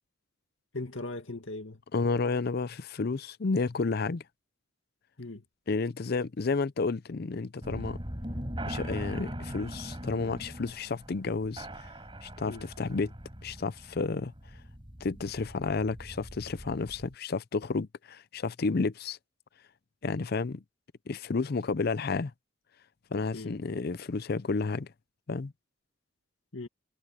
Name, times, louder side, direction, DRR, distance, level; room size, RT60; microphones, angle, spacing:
voice 1, 0.7-1.8 5.2-5.4 12.5-12.7 23.3-23.6 26.5-26.7, left 2 dB, 70° left, 2.2 m, -39 dB
voice 2, 1.9-4.2 5.7-8.0 8.7-11.7 12.2-13.1 13.4-14.3 15.0-19.2 20.0-20.6 21.1-22.3 23.1-24.9 25.3-25.5, left 4 dB, 50° left, 0.5 m, -31 dB
sound 1, 7.6-17.1, equal, 25° right, 4.9 m, -41 dB
head